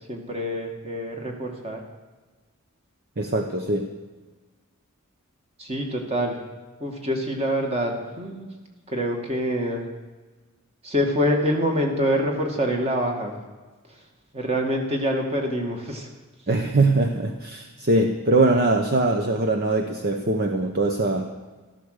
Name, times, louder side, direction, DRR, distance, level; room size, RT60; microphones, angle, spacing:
voice 1, 0.1-1.8 5.6-6.4 6.8-8.5 8.9-9.9 10.8-13.3 14.3-16.1, equal, 30° right, 2 dB, 2.1 m, -25 dB
voice 2, 3.2-3.9 16.5-21.3, right 2 dB, 45° right, 5 dB, 0.9 m, -22 dB
13.5 x 13.0 x 6.6 m, 1.3 s
head